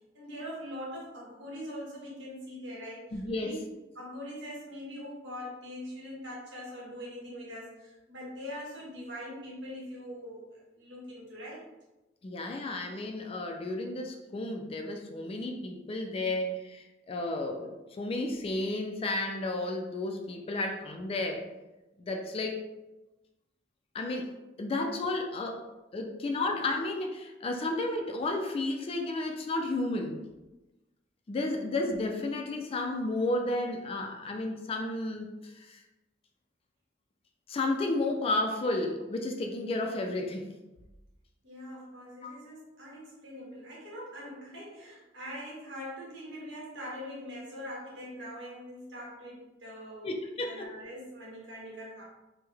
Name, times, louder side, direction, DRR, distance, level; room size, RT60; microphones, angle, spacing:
voice 1, 0.1-3.6 3.9-10.5 10.7-11.7 24.2-24.3 41.4-52.0, equal, 70° right, -5 dB, 1.2 m, -42 dB
voice 2, 3.1-3.5 12.2-21.5 22.0-22.6 23.9-24.3 24.6-25.6 25.9-30.2 31.3-35.8 37.5-40.6 42.2-42.4 50.0-50.7, left 2 dB, 30° left, 3 dB, 0.3 m, -32 dB
3.4 x 2.1 x 3.3 m, 1.0 s
head